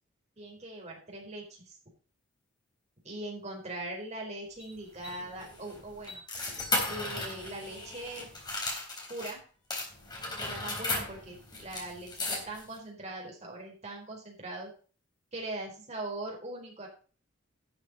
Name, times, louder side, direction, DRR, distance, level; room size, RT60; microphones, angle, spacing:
voice 1, 0.4-1.7 3.0-6.2 6.8-8.3 9.1-9.4 10.4-14.7 15.3-16.9, right 2 dB, 35° right, 0 dB, 4.4 m, -41 dB
sound 1, 4.6-9.3 9.7-12.8, left 2 dB, 20° left, 3.7 m, -36 dB
12.0 x 6.8 x 5.3 m, 0.38 s
head